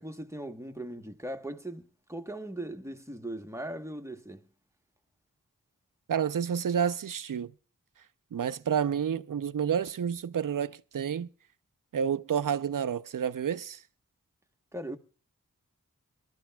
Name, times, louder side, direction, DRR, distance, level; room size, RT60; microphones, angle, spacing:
voice 1, 0.0-4.5 14.7-15.0, right 1 dB, 10° right, 1.1 m, -39 dB
voice 2, 6.1-7.5 8.3-11.3 11.9-13.8, right 8 dB, 65° right, 0.6 m, -29 dB
24.0 x 12.0 x 2.3 m
cardioid pair, 40°, 35 cm